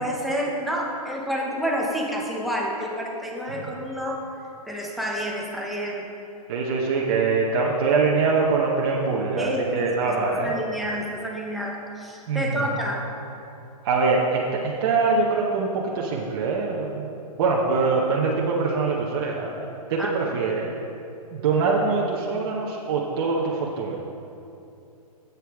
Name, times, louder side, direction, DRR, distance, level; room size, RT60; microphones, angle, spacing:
voice 1, 0.0-4.3 4.7-6.1 9.4-13.1 20.0-20.4, equal, ahead, -3 dB, 0.7 m, -29 dB
voice 2, 6.5-10.5 12.3-12.6 13.8-17.1 17.4-20.7 21.3-24.0, right 4 dB, 40° right, -3 dB, 0.9 m, -23 dB
10.5 x 8.1 x 3.5 m, 2.7 s
hypercardioid pair, 160°, 20 cm